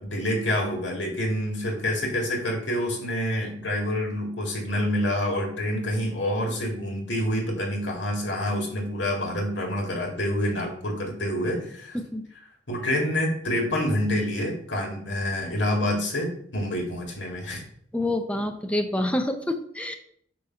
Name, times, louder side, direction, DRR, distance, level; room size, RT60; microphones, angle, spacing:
voice 1, 0.0-12.0 12.7-17.6, left 1 dB, 85° left, 1 dB, 2.0 m, -27 dB
voice 2, 17.9-20.0, left 1 dB, 5° left, 5 dB, 0.5 m, -27 dB
8.3 x 2.8 x 5.7 m, 0.64 s
head